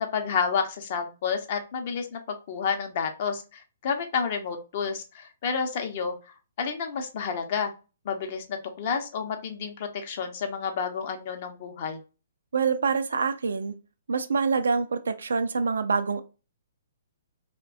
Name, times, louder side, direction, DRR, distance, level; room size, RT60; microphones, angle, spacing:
voice 1, 0.0-6.1 6.6-7.7 8.0-12.0, left 6 dB, 45° left, 0.6 m, -30 dB
voice 2, 12.5-13.8 14.1-16.2, right 5 dB, 70° right, 0.3 m, -26 dB
2.6 x 2.1 x 2.4 m
figure-of-eight pair, 130°, 0 cm